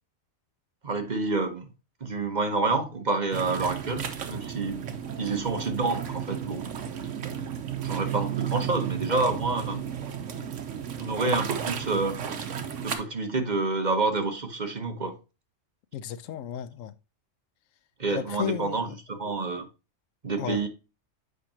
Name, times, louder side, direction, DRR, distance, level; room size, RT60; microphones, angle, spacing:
voice 1, 0.8-1.7 2.0-4.9 5.2-6.6 7.8-9.8 11.0-12.2 12.8-15.2 18.0-19.7 20.2-20.7, right 3 dB, 40° right, 1.0 m, -28 dB
sound 1, 3.3-13.0, right 8 dB, 70° right, 1.2 m, -33 dB
voice 2, 15.9-16.9 18.1-19.0 20.4-20.6, left 10 dB, 90° left, 1.0 m, -34 dB
8.1 x 5.1 x 2.8 m
omnidirectional pair, 1.3 m